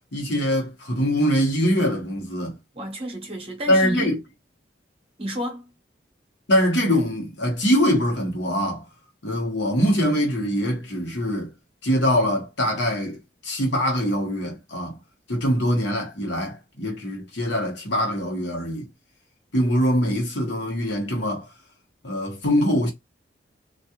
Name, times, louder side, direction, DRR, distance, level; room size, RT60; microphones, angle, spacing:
voice 1, 0.1-2.6 3.7-4.2 6.5-8.9 9.2-11.5 11.8-13.2 13.4-15.0 15.3-18.9 19.5-21.5 22.0-22.9, equal, 75° left, 1.1 m, -23 dB
voice 2, 2.7-4.1 5.2-5.7, equal, 30° right, 1.0 m, -31 dB
2.4 x 2.4 x 2.9 m
head